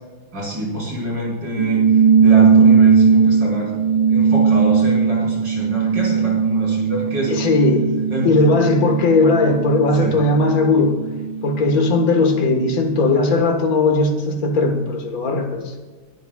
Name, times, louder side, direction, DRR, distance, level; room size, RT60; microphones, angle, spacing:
voice 1, 0.3-3.8 4.1-7.4 8.1-8.3 9.9-10.1, right 1 dB, 55° right, -4 dB, 6.1 m, -26 dB
sound 1, 1.6-12.5, right 6 dB, 70° right, 1.2 m, -18 dB
voice 2, 7.3-8.0 8.2-11.0 11.4-15.8, left 2 dB, 45° left, 4 dB, 1.9 m, -18 dB
22.5 x 13.0 x 2.4 m, 1.3 s
omnidirectional pair, 2.3 m